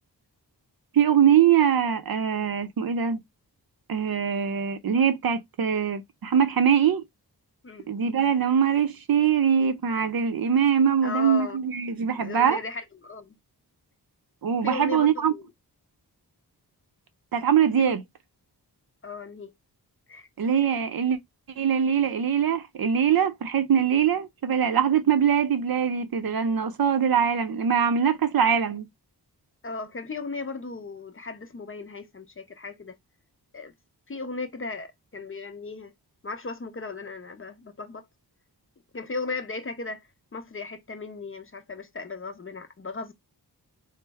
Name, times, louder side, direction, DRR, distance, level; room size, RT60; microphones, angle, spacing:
voice 1, 0.9-3.2 3.9-7.0 7.9-12.6 14.4-15.3 17.3-18.0 20.4-21.2 21.6-28.9, right 8 dB, 60° right, 0.6 m, -22 dB
voice 2, 11.0-11.6 12.2-13.4 14.6-15.5 17.8-17.9 19.0-19.5 20.1-20.3 29.6-33.0 33.5-33.7 34.1-35.9 36.2-38.0 38.9-40.1 40.3-43.1, left 3 dB, 30° left, 0.6 m, -36 dB
3.2 x 2.0 x 3.4 m
wide cardioid pair, 60°, 41 cm